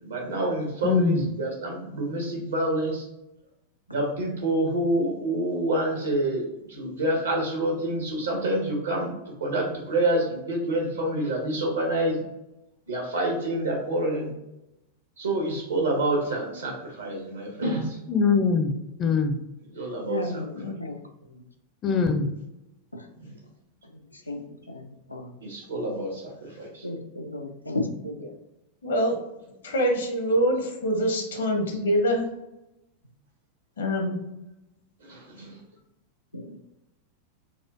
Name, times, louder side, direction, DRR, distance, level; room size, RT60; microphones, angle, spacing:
voice 1, 0.0-3.0 3.9-9.1 9.4-12.2 12.9-14.3 15.2-18.0 19.7-20.4 23.2-23.3 25.4-26.8 35.0-35.6, right 1 dB, 70° right, -1 dB, 1.2 m, -27 dB
voice 2, 0.8-1.2 18.1-18.7 19.0-19.4 21.8-22.3, left 5 dB, 30° left, 5 dB, 0.5 m, -22 dB
voice 3, 20.1-20.9 22.9-23.0 24.3-25.3 26.8-28.2 36.3-36.6, left 2 dB, 85° left, 3 dB, 0.4 m, -33 dB
voice 4, 28.8-29.1 29.6-32.3 33.8-34.2, equal, 65° left, 3 dB, 0.8 m, -25 dB
4.1 x 2.4 x 2.6 m, 0.89 s
figure-of-eight pair, 90°, 0 cm